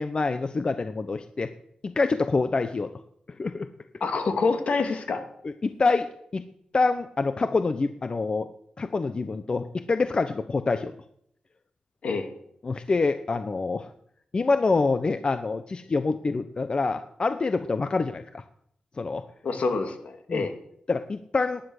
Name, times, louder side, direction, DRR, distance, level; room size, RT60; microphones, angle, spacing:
voice 1, 0.0-1.5 1.8-2.9 3.4-3.7 5.4-6.1 6.3-6.4 6.7-8.5 8.8-10.9 12.6-13.9 14.3-18.4 19.0-19.2 20.3-20.5 20.9-21.6, left 3 dB, 40° left, 10 dB, 0.9 m, -26 dB
voice 2, 4.0-5.2 12.0-12.3 19.4-20.5, left 4 dB, 70° left, 5 dB, 2.6 m, -26 dB
18.5 x 10.5 x 6.6 m, 0.72 s
cardioid pair, 85°, 2 cm